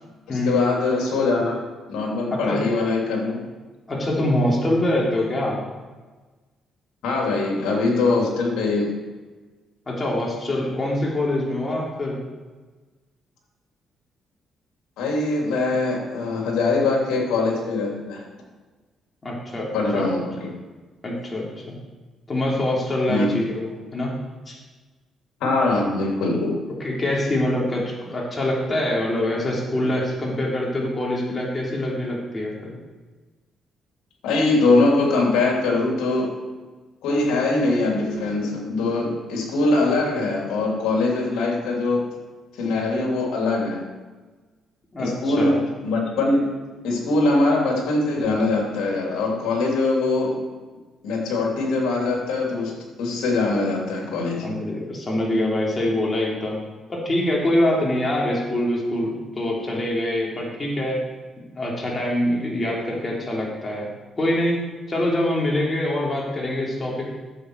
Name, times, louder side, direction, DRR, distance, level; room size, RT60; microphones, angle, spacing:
voice 1, 0.3-1.6 1.9-3.4 7.0-8.9 15.0-18.2 19.7-20.5 23.1-23.3 25.4-26.6 34.2-36.3 37.0-42.1 42.6-43.8 45.0-46.5 46.8-50.4 51.0-54.5, left 3 dB, 90° left, -1 dB, 3.0 m, -22 dB
voice 2, 2.3-2.8 3.9-5.6 9.9-12.2 19.2-20.1 21.0-21.7 22.3-24.1 24.5-24.6 26.8-32.8 44.9-45.6 54.4-56.6 56.9-61.0 61.4-63.9 64.2-67.1, left 1 dB, 30° left, -3 dB, 3.4 m, -24 dB
11.0 x 8.1 x 4.7 m, 1.3 s
cardioid pair, 90°, 0 cm